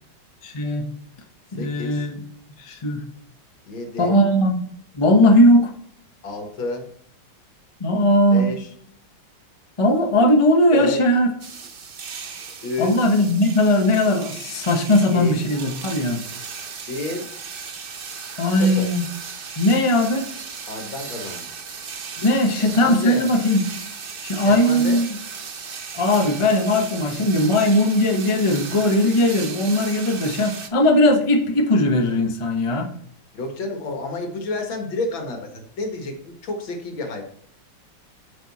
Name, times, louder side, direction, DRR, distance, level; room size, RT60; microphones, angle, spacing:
voice 1, 0.4-0.9 1.5-2.1 2.6-3.0 4.0-4.6 4.9-5.7 7.8-8.5 9.8-11.3 12.8-16.2 18.4-19.0 19.6-20.3 22.2-23.6 24.2-25.1 25.9-32.9, left 1 dB, 25° left, 3 dB, 0.7 m, -18 dB
voice 2, 1.5-2.1 3.7-4.2 6.2-6.9 8.3-8.7 10.7-11.0 12.6-13.1 14.9-15.4 16.9-17.3 18.4-18.9 20.7-21.5 22.6-23.3 24.3-25.0 33.3-37.2, left 2 dB, 70° left, 4 dB, 2.4 m, -30 dB
sound 1, 11.4-30.7, right 5 dB, 75° right, 0.5 m, -36 dB
9.0 x 6.9 x 4.1 m, 0.66 s
omnidirectional pair, 2.2 m